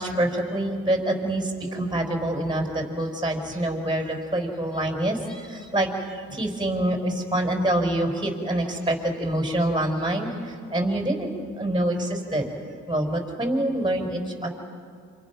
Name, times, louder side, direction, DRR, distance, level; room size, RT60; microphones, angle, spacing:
voice 1, 0.0-11.3 11.6-12.5 12.9-14.5, right 1 dB, 15° right, 3 dB, 5.3 m, -26 dB
28.0 x 26.5 x 6.1 m, 2.2 s
cardioid pair, 90°, 30 cm